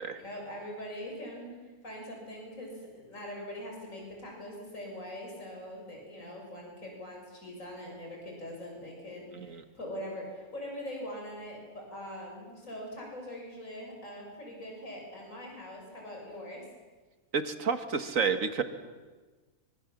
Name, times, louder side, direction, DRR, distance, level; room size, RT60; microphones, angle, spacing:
voice 1, 0.0-16.7, equal, 60° left, 0 dB, 6.7 m, -42 dB
voice 2, 17.3-18.6, right 5 dB, 60° right, 9 dB, 2.0 m, -30 dB
25.5 x 24.5 x 7.4 m, 1.3 s
omnidirectional pair, 1.6 m